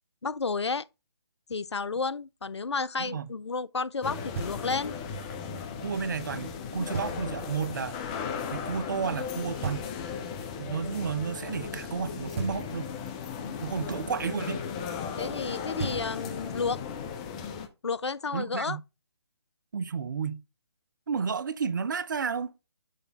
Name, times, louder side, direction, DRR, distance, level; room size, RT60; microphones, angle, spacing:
voice 1, 0.2-0.9 1.5-4.9 13.4-13.7 15.2-16.8 17.8-18.8, left 4 dB, 80° left, 0.4 m, -31 dB
voice 2, 3.0-3.3 5.8-8.0 8.5-9.9 10.6-12.9 13.6-14.6 18.3-18.8 19.7-20.4 21.1-22.5, right 6 dB, 45° right, 0.5 m, -32 dB
sound 1, 4.0-17.7, left 6 dB, 15° left, 0.5 m, -36 dB
Knock, 4.3-5.0 6.9-7.6 9.6-10.4 12.3-13.1 15.4-15.5 15.8-16.6, right 5 dB, 30° right, 1.3 m, -38 dB
6.4 x 3.3 x 5.3 m
figure-of-eight pair, 145°, 14 cm